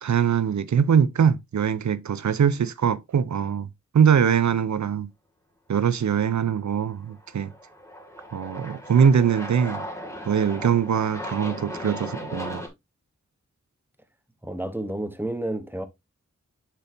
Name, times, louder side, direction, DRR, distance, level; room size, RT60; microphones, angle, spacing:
voice 1, 0.0-3.7 3.9-5.1 5.7-7.5 8.3-9.9 10.2-12.6, right 7 dB, 75° right, 0.6 m, -22 dB
Aircraft, 6.9-12.7, equal, 10° left, 2.2 m, -37 dB
voice 2, 14.4-15.9, right 1 dB, 5° right, 1.0 m, -30 dB
6.8 x 6.2 x 2.7 m
wide cardioid pair, 70°, 29 cm